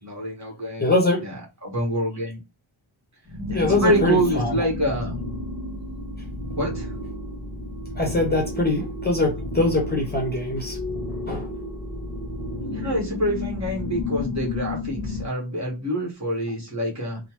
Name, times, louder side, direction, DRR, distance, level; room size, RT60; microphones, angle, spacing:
voice 1, 0.0-0.9 1.2-1.3 1.6-2.4 3.5-5.2 6.6-6.9 12.7-17.2, right 1 dB, 35° right, 1.3 m, -26 dB
voice 2, 0.8-1.2 3.5-4.5 8.0-10.8 11.3-11.5, left 2 dB, 20° left, 0.7 m, -23 dB
sound 1, 3.3-15.3, left 2 dB, 10° right, 1.4 m, -31 dB
3.2 x 2.0 x 2.9 m
wide cardioid pair, 125°, 49 cm